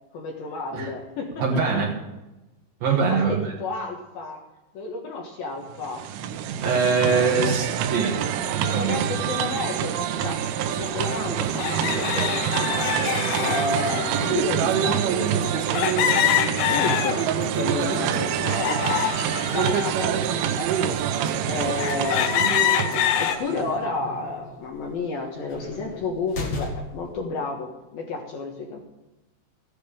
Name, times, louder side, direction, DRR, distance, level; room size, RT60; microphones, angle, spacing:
voice 1, 0.1-1.8 2.8-4.4 4.7-6.0 7.0-7.6 8.6-10.4 10.8-12.9 13.4-17.3 17.5-19.1 19.5-22.4 22.9-28.8, left 3 dB, 65° left, 0 dB, 2.6 m, -31 dB
voice 2, 1.4-1.9 2.8-3.5 6.6-8.2 8.5-9.0, right 5 dB, 65° right, -2 dB, 2.6 m, -23 dB
sound 1, 5.7-23.7, right 9 dB, 80° right, 3.3 m, -26 dB
sound 2, 10.4-10.5 11.6-14.3 15.7-17.5 17.9-19.9 20.5-20.6 21.3-21.4 21.8-23.4, left 11 dB, 80° left, 2.5 m, -25 dB
sound 3, 21.8-27.1, left 2 dB, 45° left, 2.2 m, -37 dB
15.0 x 10.0 x 5.1 m, 1.0 s
omnidirectional pair, 5.6 m